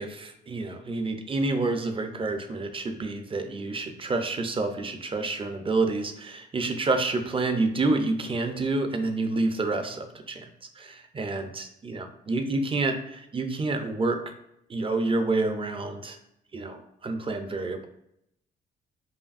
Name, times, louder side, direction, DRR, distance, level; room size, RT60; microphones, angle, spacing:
voice 1, 0.0-10.5 10.7-14.2 14.7-16.2 16.5-17.9, right 3 dB, 25° right, 7 dB, 0.5 m, -28 dB
4.9 x 2.6 x 2.5 m, 0.78 s
cardioid pair, 90°, 20 cm